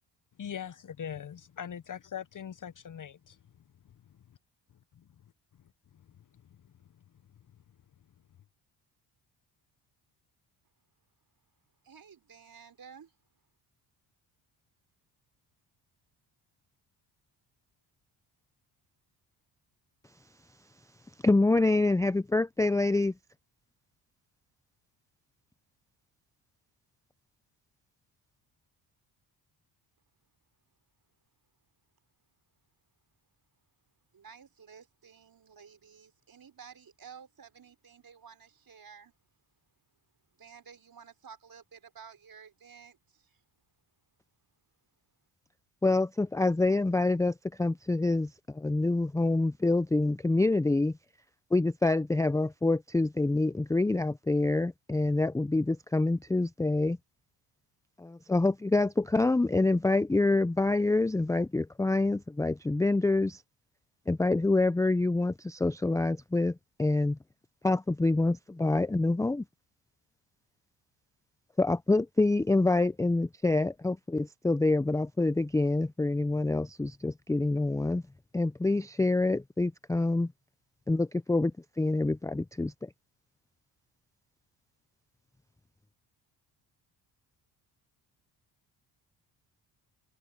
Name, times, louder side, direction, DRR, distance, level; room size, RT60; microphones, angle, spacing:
voice 1, 0.4-4.2 5.9-6.1 6.3-6.7, left 8 dB, 40° left, 0.8 m, -42 dB
voice 2, 11.8-13.1 34.1-39.1 40.4-43.4, right 7 dB, 45° right, 5.1 m, -52 dB
voice 3, 21.2-23.1 45.8-50.9 51.5-57.0 58.0-63.4 64.1-67.2 67.6-69.4 71.6-78.0 78.3-80.3 80.9-81.5 81.8-82.9, left 2 dB, 5° left, 0.5 m, -26 dB
supercardioid pair, 65°, 48 cm